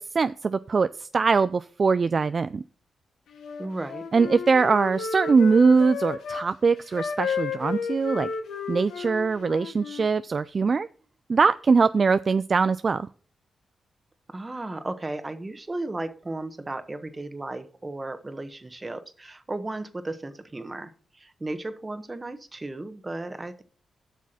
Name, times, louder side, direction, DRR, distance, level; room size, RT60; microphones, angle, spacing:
voice 1, 0.0-2.6 4.1-8.3 8.7-10.9 11.3-13.1, right 4 dB, 50° right, 14 dB, 0.3 m, -22 dB
Wind instrument woodwind instrument, 3.3-6.5 6.9-10.1, left 6 dB, 80° left, 1.1 m, -33 dB
voice 2, 3.6-4.0 14.3-23.6, right 2 dB, 30° right, 10 dB, 1.4 m, -35 dB
8.1 x 6.1 x 6.1 m, 0.43 s
supercardioid pair, 45°, 0 cm